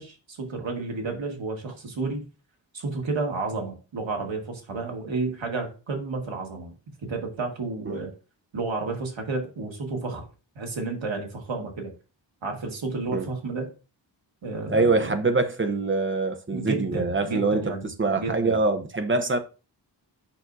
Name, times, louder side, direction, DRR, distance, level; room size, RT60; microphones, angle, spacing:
voice 1, 0.0-2.3 2.7-6.7 7.0-8.1 8.5-10.2 10.5-11.9 12.4-13.7 14.4-15.2 16.5-17.9 18.2-18.6, right 3 dB, 80° right, 1.9 m, -31 dB
voice 2, 14.7-19.4, right 3 dB, 25° right, 0.8 m, -24 dB
8.6 x 6.0 x 2.7 m
wide cardioid pair, 95°, 45 cm